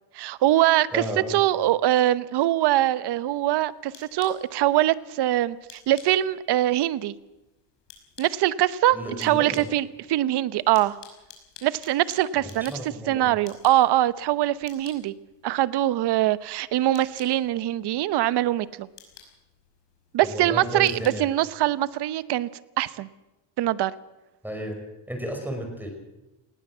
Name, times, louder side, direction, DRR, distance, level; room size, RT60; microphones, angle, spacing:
voice 1, 0.1-1.0 1.3-7.1 8.2-11.0 11.6-15.1 15.4-18.9 20.1-22.5 22.8-23.1 23.6-23.9, right 14 dB, 55° right, 17 dB, 1.0 m, -23 dB
voice 2, 0.9-1.3 8.9-9.6 12.4-13.2 20.2-21.2 24.4-24.8 25.1-25.9, right 1 dB, 5° right, 3 dB, 5.2 m, -33 dB
sound 1, 3.3-22.1, left 7 dB, 60° left, 5.7 m, -53 dB
19.5 x 18.0 x 7.4 m, 1.0 s
cardioid pair, 120°, 47 cm